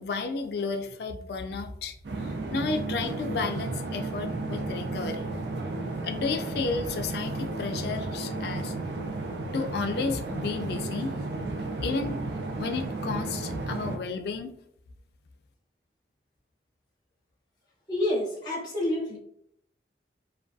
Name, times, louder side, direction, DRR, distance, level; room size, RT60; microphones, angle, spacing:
voice 1, 0.0-1.9 2.2-5.2 6.0-8.7 9.4-11.1 11.8-12.2 12.6-14.6, left 4 dB, 60° left, 6 dB, 0.3 m, -32 dB
sound 1, 2.0-14.0, right 2 dB, 75° right, 0.4 m, -33 dB
voice 2, 17.9-19.2, left 1 dB, 25° left, -4 dB, 0.6 m, -28 dB
2.3 x 2.2 x 2.6 m, 0.72 s
head